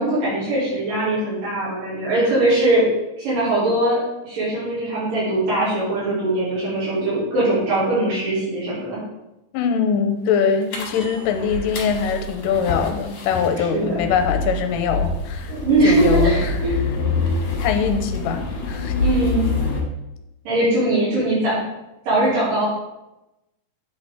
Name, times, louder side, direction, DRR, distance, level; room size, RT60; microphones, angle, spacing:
voice 1, 0.0-2.9 3.2-9.0 13.6-14.0 15.5-16.7 17.2-17.3 19.0-19.5 20.5-21.6 22.1-22.7, right 2 dB, 75° right, -10 dB, 4.1 m, -21 dB
voice 2, 9.5-15.5 15.8-16.5 17.6-18.9 20.6-20.7, left 6 dB, 80° left, 7 dB, 2.2 m, -23 dB
sound 1, 10.7-19.8, left 3 dB, 65° left, 2.4 m, -26 dB
8.3 x 4.0 x 3.6 m, 0.94 s
omnidirectional pair, 3.9 m